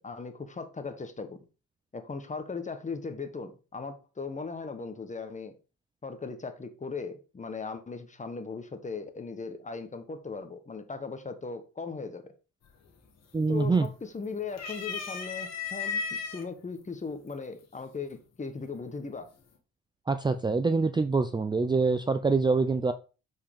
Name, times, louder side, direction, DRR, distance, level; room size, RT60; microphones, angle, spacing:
voice 1, 0.0-1.4 1.9-5.6 6.0-12.3 13.5-16.0 16.3-19.3, left 4 dB, 25° left, 1.2 m, -38 dB
sound 1, 12.6-13.1 13.4-14.1 14.5-16.4 17.3-17.4 18.6-19.1, left 5 dB, 60° left, 1.7 m, -35 dB
voice 2, 13.3-13.9 20.1-22.9, right 4 dB, 15° right, 0.5 m, -25 dB
7.5 x 4.7 x 3.7 m
cardioid pair, 90°, 30 cm